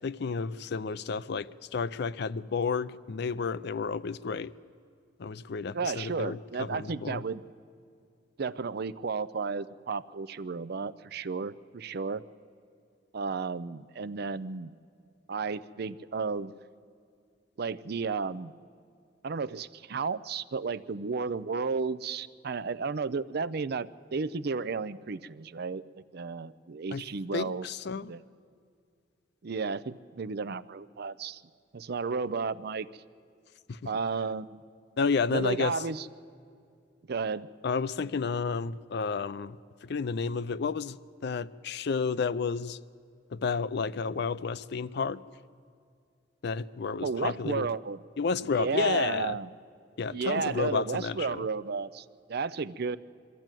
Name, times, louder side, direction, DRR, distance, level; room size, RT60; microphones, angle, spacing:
voice 1, 0.0-4.5 5.2-7.2 26.9-27.0 27.3-28.1 33.7-33.9 35.0-35.8 37.6-41.0 41.2-42.8 43.3-45.2 46.4-47.7 48.2-49.4 50.0-51.5, left 5 dB, 60° left, 15 dB, 0.5 m, -31 dB
voice 2, 5.7-7.4 8.4-12.2 13.1-14.7 15.3-16.5 17.6-18.5 19.2-25.8 26.1-27.7 27.9-28.2 29.4-31.4 31.7-32.9 33.8-34.6 35.3-36.1 37.1-37.5 47.0-48.0 48.6-49.5 50.1-53.0, right 4 dB, 55° right, 16 dB, 0.5 m, -33 dB
23.0 x 13.5 x 9.0 m, 2.4 s
head